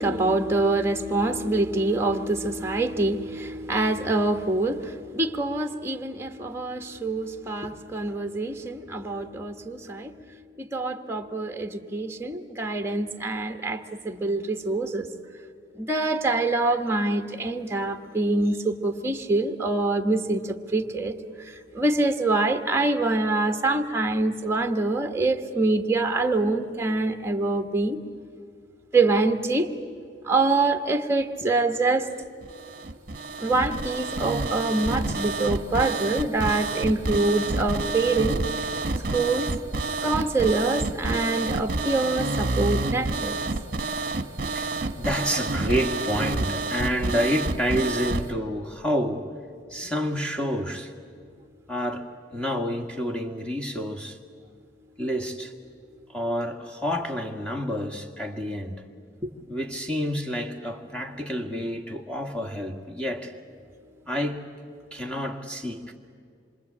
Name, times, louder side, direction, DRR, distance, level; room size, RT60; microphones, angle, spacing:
voice 1, 0.0-15.1 15.7-28.0 28.9-29.7 30.2-32.1 33.4-38.4 39.1-39.5 40.0-43.4 59.2-59.3, right 2 dB, 15° right, 1.3 m, -25 dB
sound 1, 32.4-48.3, right 2 dB, 50° right, 1.1 m, -29 dB
voice 2, 44.5-49.3 49.7-50.9 51.7-54.2 55.0-55.5 56.1-58.8 59.5-63.3 64.1-64.4 64.9-65.9, equal, 5° left, 1.8 m, -29 dB
27.0 x 24.0 x 8.6 m
head